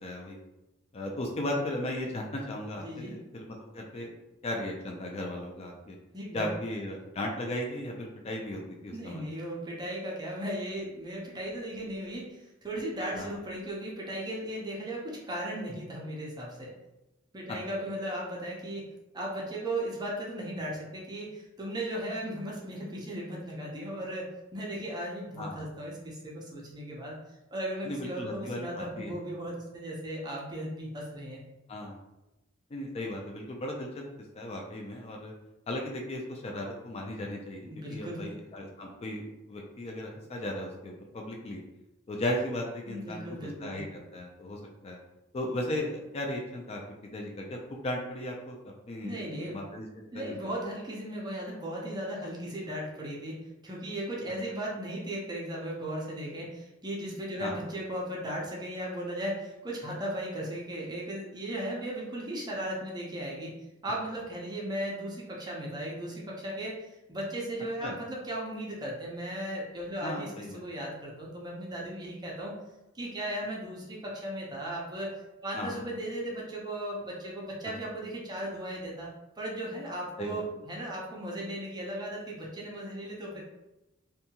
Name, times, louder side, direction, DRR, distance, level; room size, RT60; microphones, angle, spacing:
voice 1, 0.0-0.4 0.9-4.1 4.4-6.0 6.3-9.2 13.1-13.3 25.4-25.6 27.8-29.1 31.7-32.0 32.7-34.0 34.3-35.3 35.7-41.6 42.1-45.0 45.3-46.8 47.1-48.6 48.9-49.2 49.5-49.9 50.1-50.3 57.4-57.5 67.8-68.0 70.0-70.6 75.5-75.7 80.2-80.4, left 1 dB, 30° left, 0 dB, 0.3 m, -36 dB
voice 2, 2.8-3.1 6.1-6.5 8.9-16.7 17.3-18.9 19.1-24.3 24.5-27.2 27.5-31.4 37.6-38.3 42.9-43.8 49.0-49.6 50.1-63.5 63.8-72.5 72.9-75.1 75.4-79.1 79.4-83.4, right 1 dB, 20° right, -3 dB, 0.5 m, -36 dB
2.6 x 2.2 x 2.8 m, 0.96 s
head